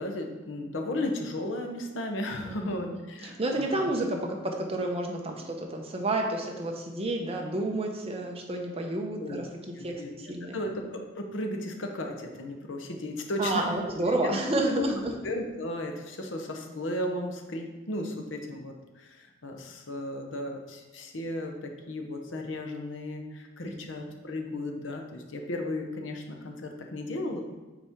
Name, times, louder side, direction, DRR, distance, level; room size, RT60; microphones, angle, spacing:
voice 1, 0.0-3.9 9.2-9.4 9.8-13.7 14.7-14.8 15.2-27.4, left 1 dB, 75° left, 3 dB, 0.8 m, -35 dB
voice 2, 2.4-10.6 13.4-15.1 23.6-23.7, right 1 dB, 30° right, 2 dB, 0.8 m, -30 dB
7.0 x 4.3 x 3.6 m, 1.2 s
head